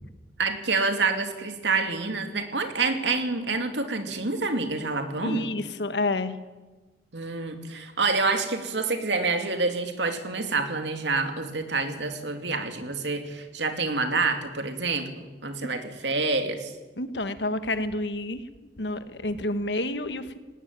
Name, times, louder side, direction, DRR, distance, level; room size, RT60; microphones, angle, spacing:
voice 1, 0.4-5.5 7.1-16.7, right 3 dB, 90° right, 6 dB, 2.7 m, -27 dB
voice 2, 5.2-6.4 17.0-18.5 18.8-20.4, left 2 dB, 80° left, 10 dB, 1.5 m, -29 dB
18.5 x 18.5 x 9.6 m, 1.2 s
head